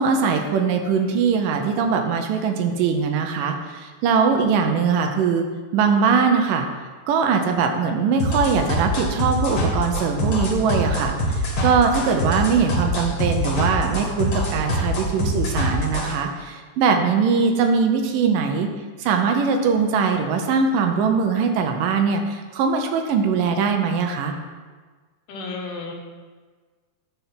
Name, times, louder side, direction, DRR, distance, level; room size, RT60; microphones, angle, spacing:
voice 1, 0.0-5.5 5.7-6.7 7.1-18.7 19.0-24.3, right 5 dB, 80° right, 5 dB, 2.3 m, -21 dB
sound 1, 8.2-16.1, equal, 45° left, 2.0 m, -24 dB
voice 2, 25.3-25.9, left 3 dB, 75° left, 1 dB, 2.7 m, -32 dB
11.0 x 4.4 x 5.8 m, 1.4 s
omnidirectional pair, 4.0 m